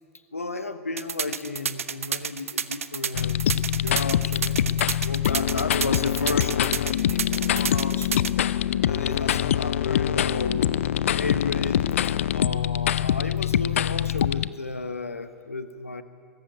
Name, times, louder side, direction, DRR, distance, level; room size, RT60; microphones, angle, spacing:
voice 1, 0.3-8.1 8.8-10.7 11.1-11.8 12.3-16.0, left 3 dB, 85° left, 10 dB, 1.4 m, -33 dB
sound 1, 1.0-8.3, right 7 dB, 75° right, 1.0 m, -29 dB
sound 2, 3.1-14.5, left 11 dB, 65° left, 0.6 m, -24 dB
23.5 x 21.0 x 9.4 m, 2.1 s
figure-of-eight pair, 90°, 8 cm